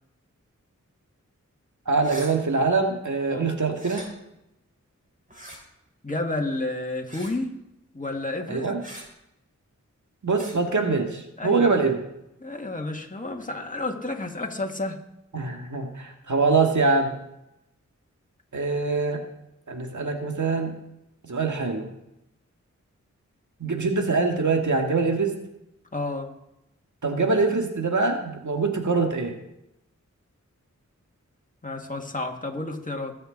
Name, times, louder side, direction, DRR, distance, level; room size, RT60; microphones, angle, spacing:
voice 1, 1.9-4.0 8.5-8.8 10.2-12.0 15.3-17.2 18.5-19.2 19.7-20.7 21.2-21.9 23.6-25.3 27.0-29.4, right 4 dB, 70° right, 3 dB, 1.9 m, -24 dB
sound 1, 2.0-2.3 3.7-4.1 5.3-5.6 7.1-7.4 8.8-9.1 10.3-10.6, equal, 25° right, 4.6 m, -41 dB
voice 2, 6.0-7.5 7.9-8.7 11.4-11.7 12.4-15.0 25.9-26.3 31.6-33.1, left 2 dB, 25° left, 2 dB, 1.9 m, -30 dB
19.5 x 7.8 x 4.0 m, 0.86 s
cardioid pair, 45°, 31 cm